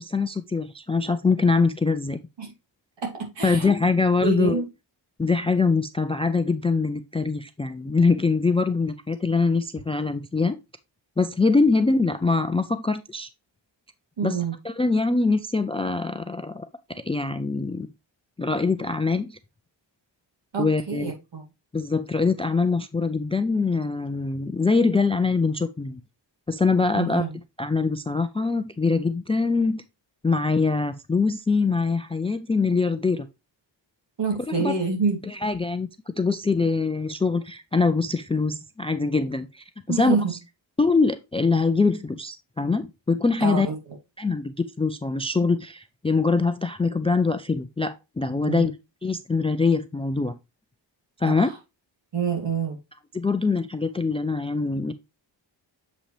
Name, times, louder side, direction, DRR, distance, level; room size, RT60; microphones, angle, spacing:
voice 1, 0.0-2.2 3.4-4.6 5.2-10.6 11.2-13.3 14.2-14.4 14.6-16.7 17.1-17.9 18.4-19.4 20.6-21.1 21.7-26.0 26.5-27.2 27.6-29.8 30.2-33.3 34.6-34.7 35.4-35.9 36.2-40.2 40.8-43.7 44.2-48.7 49.0-50.4 51.2-51.5 53.1-54.9, left 4 dB, 15° left, 0.3 m, -23 dB
voice 2, 3.0-3.7 4.2-4.6 14.2-14.5 20.5-21.4 26.9-27.4 34.2-35.2 39.9-40.3 43.4-43.8 48.4-48.7 51.2-51.5 52.1-52.8, right 5 dB, 70° right, 2.7 m, -27 dB
7.3 x 5.2 x 3.3 m
wide cardioid pair, 135°, 45 cm